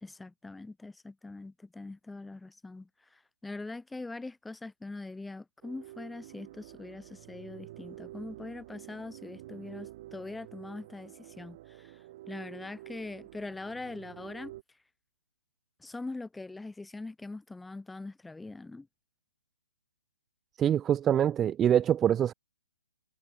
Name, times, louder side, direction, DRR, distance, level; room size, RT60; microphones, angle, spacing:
voice 1, 0.0-11.9 12.3-14.5 15.8-18.9, left 3 dB, 5° left, 3.7 m, -42 dB
sound 1, 5.6-14.6, right 16 dB, 40° right, 5.7 m, -49 dB
voice 2, 20.6-22.3, right 10 dB, 15° right, 0.3 m, -24 dB
hypercardioid pair, 145°, 0 cm